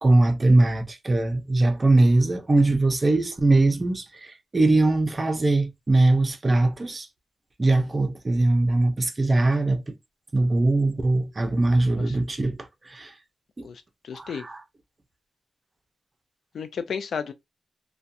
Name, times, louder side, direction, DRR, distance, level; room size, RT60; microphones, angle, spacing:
voice 1, 0.0-7.1 7.6-9.9 10.3-13.1 13.6-13.7 14.1-14.6, right 2 dB, 30° right, 0.5 m, -21 dB
voice 2, 13.6-14.4 16.5-17.3, left 6 dB, 75° left, 0.4 m, -33 dB
2.4 x 2.2 x 2.6 m
wide cardioid pair, 115°, 0 cm